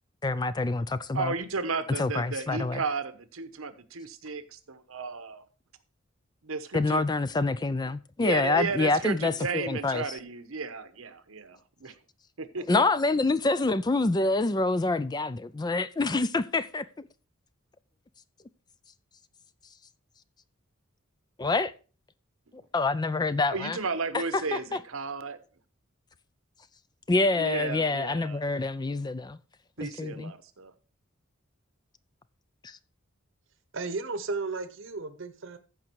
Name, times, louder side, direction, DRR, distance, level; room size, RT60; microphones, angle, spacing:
voice 1, 0.2-1.3 2.0-2.8 6.7-10.0 12.7-17.1 21.4-21.7 22.7-23.8 24.5-24.8 27.1-29.4 29.8-30.3 32.6-32.8, left 3 dB, 20° left, 0.4 m, -26 dB
voice 2, 1.1-5.4 6.4-7.0 8.2-12.0 12.4-12.8 23.5-25.4 27.3-28.4 29.8-30.7, right 4 dB, 85° right, 1.1 m, -34 dB
voice 3, 33.7-35.6, right 3 dB, 65° right, 1.0 m, -34 dB
14.5 x 5.2 x 4.6 m
head